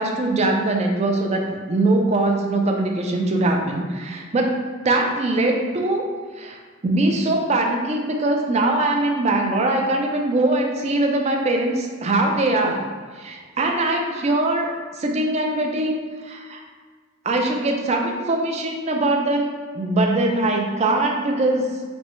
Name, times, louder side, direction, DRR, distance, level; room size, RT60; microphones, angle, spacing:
voice 1, 0.0-4.6 4.8-6.0 6.4-12.9 13.1-16.6 17.3-21.7, right 2 dB, 30° right, 2 dB, 0.4 m, -22 dB
5.2 x 2.0 x 3.1 m, 1.5 s
head